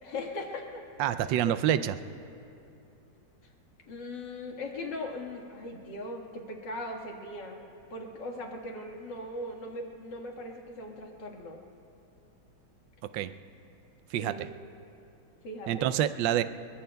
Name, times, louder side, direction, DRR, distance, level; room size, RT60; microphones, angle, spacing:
voice 1, 0.0-1.6 3.9-7.6 7.9-11.6 14.2-14.5 15.4-15.9, left 1 dB, 65° left, 0 dB, 2.4 m, -39 dB
voice 2, 1.0-2.0 13.1-13.3 14.1-14.3 15.7-16.4, right 11 dB, 75° right, 12 dB, 1.2 m, -27 dB
26.0 x 23.0 x 2.3 m, 2.8 s
omnidirectional pair, 2.1 m